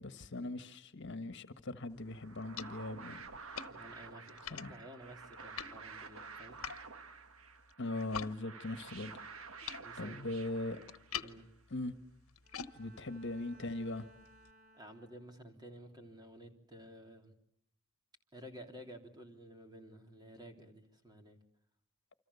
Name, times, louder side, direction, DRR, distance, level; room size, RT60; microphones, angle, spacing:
voice 1, 0.0-3.2 4.5-4.7 7.8-9.2 10.0-10.8 11.7-11.9 12.7-14.1, left 2 dB, 60° left, 1.4 m, -40 dB
sound 1, 1.9-8.4 8.6-14.5, left 8 dB, 85° left, 1.1 m, -49 dB
sound 2, 2.1-11.4, right 4 dB, 75° right, 1.5 m, -51 dB
voice 2, 3.7-6.6 9.8-10.3 11.2-11.5 14.7-17.3 18.3-21.4, equal, 20° right, 3.2 m, -53 dB
Bowed string instrument, 12.4-15.6, right 1 dB, 45° right, 3.9 m, -62 dB
28.5 x 26.0 x 7.0 m
head